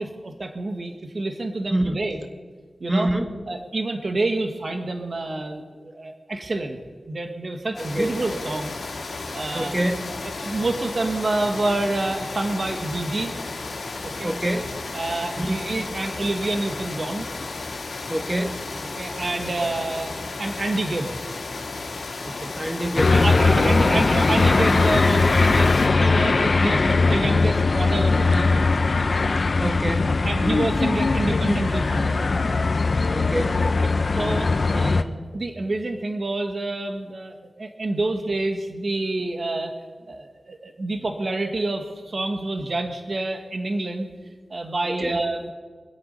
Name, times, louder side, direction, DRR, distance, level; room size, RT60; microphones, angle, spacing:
voice 1, 0.0-2.2 2.8-3.1 3.5-6.8 7.0-8.7 9.1-9.7 10.1-13.4 14.0-14.3 14.9-17.3 18.9-20.1 20.4-21.2 22.2-22.5 23.0-28.8 30.0-32.3 33.8-35.1 35.3-37.3 37.6-39.7 40.1-44.1 44.5-45.5, right 2 dB, 55° right, 5 dB, 1.5 m, -28 dB
voice 2, 2.9-3.3 7.7-8.1 9.5-10.1 14.2-14.8 15.4-15.6 18.1-18.6 22.5-24.0 29.6-30.2 33.1-33.7 34.7-35.1 45.0-45.2, right 1 dB, 15° right, 5 dB, 1.7 m, -26 dB
sound 1, 7.7-25.9, left 3 dB, 85° left, 2.0 m, -33 dB
sound 2, 23.0-35.0, left 3 dB, 60° left, 0.7 m, -20 dB
24.5 x 8.3 x 5.4 m, 1.5 s
cardioid pair, 60°, 0 cm